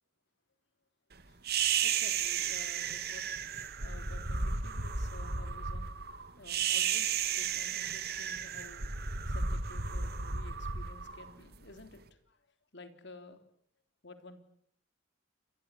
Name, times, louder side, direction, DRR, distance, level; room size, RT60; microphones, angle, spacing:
sound 1, 1.4-11.8, right 6 dB, 55° right, 2.3 m, -33 dB
voice 1, 1.8-3.2 3.8-5.9 6.4-8.9 9.3-12.0 12.3-12.4 12.7-13.4 14.0-14.4, left 2 dB, 65° left, 8 dB, 3.5 m, -52 dB
29.0 x 23.0 x 8.4 m, 0.67 s
head